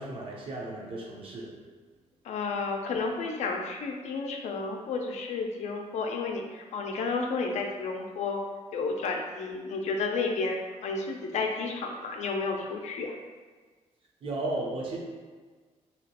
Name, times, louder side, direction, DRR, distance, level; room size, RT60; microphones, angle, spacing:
voice 1, 0.0-1.6 14.2-15.0, right 2 dB, 45° right, -2 dB, 0.6 m, -34 dB
voice 2, 2.2-8.4 8.7-13.1, left 4 dB, 65° left, 2 dB, 0.4 m, -31 dB
2.9 x 2.8 x 2.8 m, 1.4 s
cardioid pair, 160°, 13 cm